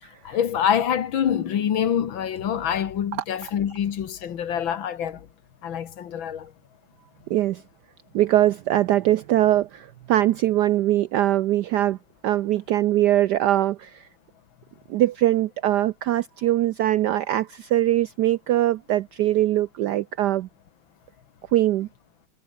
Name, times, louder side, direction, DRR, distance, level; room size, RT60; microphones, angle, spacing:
voice 1, 0.2-5.3 5.6-6.5, left 9 dB, 70° left, 2.1 m, -25 dB
voice 2, 7.3-7.6 8.1-12.0 12.2-14.1 14.9-20.5 21.5-21.9, right 13 dB, 75° right, 0.9 m, -22 dB
omnidirectional pair, 2.3 m